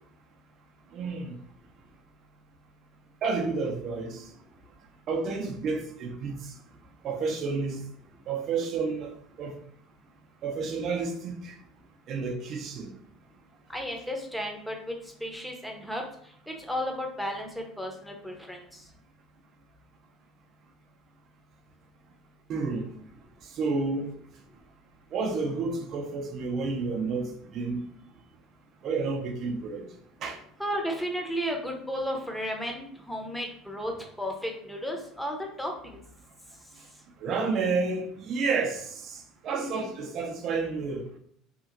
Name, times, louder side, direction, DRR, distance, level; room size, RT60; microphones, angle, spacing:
voice 1, 0.9-1.3 3.2-4.2 5.1-6.4 7.0-7.8 8.3-9.5 10.4-11.6 12.1-12.9 22.5-22.9 23.6-24.1 25.1-27.8 28.8-29.9 30.2-30.4 37.2-41.1, right 4 dB, 50° right, 0.5 m, -30 dB
voice 2, 13.7-14.9 15.2-16.0 16.5-18.8 30.6-33.9 34.2-36.0 39.6-39.9, equal, 5° left, 0.7 m, -33 dB
2.9 x 2.4 x 2.5 m
hypercardioid pair, 70°, 0 cm